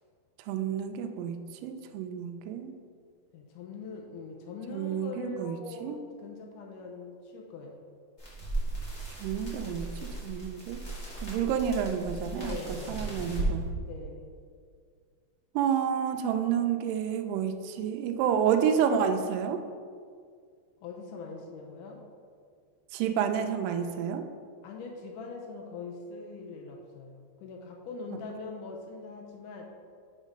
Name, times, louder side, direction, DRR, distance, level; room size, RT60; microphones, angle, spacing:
voice 1, 0.5-2.7 4.7-6.0 9.2-9.9 10.2-10.8 11.2-12.6 12.9-13.7 15.6-19.6 22.9-24.2, right 8 dB, 80° right, 5 dB, 2.1 m, -29 dB
voice 2, 3.3-7.9 12.2-13.1 13.8-14.3 20.8-22.0 24.6-29.7, left 4 dB, 80° left, 1 dB, 1.9 m, -42 dB
sound 1, 8.2-13.5, right 2 dB, 45° left, 0.9 m, -37 dB
6.4 x 4.5 x 5.1 m, 2.1 s
omnidirectional pair, 4.1 m